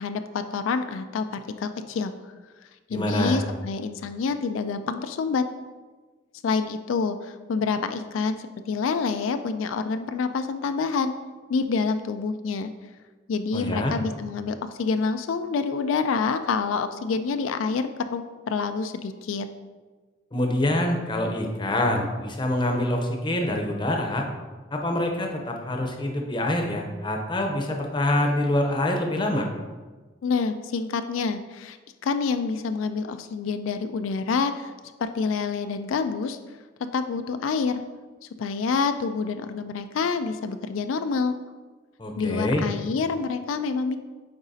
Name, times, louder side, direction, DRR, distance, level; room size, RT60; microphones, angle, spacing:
voice 1, 0.0-2.1 2.9-5.4 6.4-11.1 11.5-12.7 13.3-19.5 30.2-31.8 32.0-34.7 35.0-36.4 36.9-37.8 38.4-41.3 42.2-44.0, left 5 dB, 90° left, 9 dB, 0.3 m, -27 dB
voice 2, 2.9-3.4 13.5-13.9 20.3-24.3 24.7-29.5 42.0-42.6, left 1 dB, 25° left, 2 dB, 0.7 m, -25 dB
8.7 x 4.0 x 2.7 m, 1.3 s
head